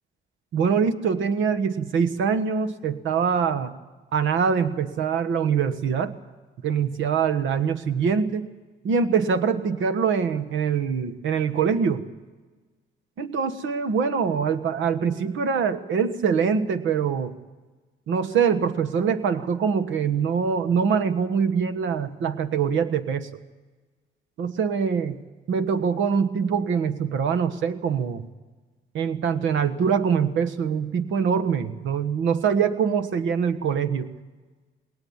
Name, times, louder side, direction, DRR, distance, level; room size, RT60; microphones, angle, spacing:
voice 1, 0.5-3.7 4.1-6.1 6.6-8.5 8.8-12.0 13.2-17.3 18.1-23.3 24.4-25.2 25.5-28.2 28.9-34.1, right 6 dB, 75° right, 11 dB, 1.3 m, -24 dB
20.5 x 18.5 x 7.2 m, 1.3 s
cardioid pair, 90°, 20 cm